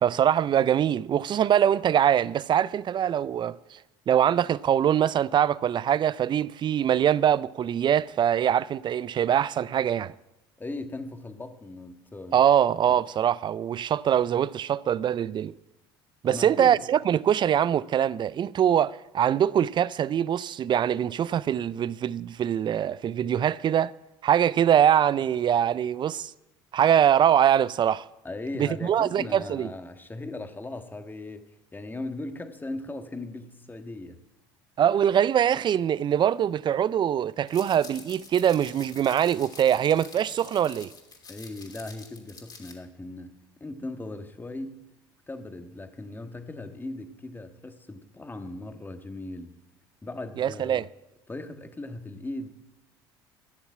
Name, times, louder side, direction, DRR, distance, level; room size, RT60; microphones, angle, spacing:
voice 1, 0.0-3.8 4.1-10.1 12.3-15.5 16.2-23.9 24.2-26.3 26.7-28.1 28.6-29.7 34.8-40.9 50.4-50.8, right 9 dB, 40° right, 0.5 m, -23 dB
voice 2, 10.6-12.5 16.2-16.8 28.2-34.2 41.3-44.8 45.3-49.5 50.0-50.8 51.3-52.5, left 2 dB, 15° left, 1.5 m, -38 dB
sound 1, 37.5-42.7, left 4 dB, 35° left, 3.0 m, -47 dB
13.0 x 7.1 x 8.6 m
hypercardioid pair, 70°, 12 cm